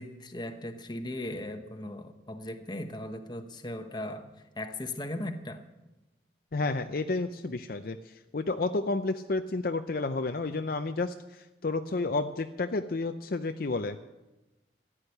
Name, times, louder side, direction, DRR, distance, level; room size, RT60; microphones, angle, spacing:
voice 1, 0.0-4.3 4.5-5.6, left 1 dB, 25° left, 7 dB, 1.0 m, -38 dB
voice 2, 6.5-14.0, left 3 dB, 50° left, 8 dB, 0.5 m, -31 dB
14.5 x 10.0 x 6.6 m, 1.0 s
head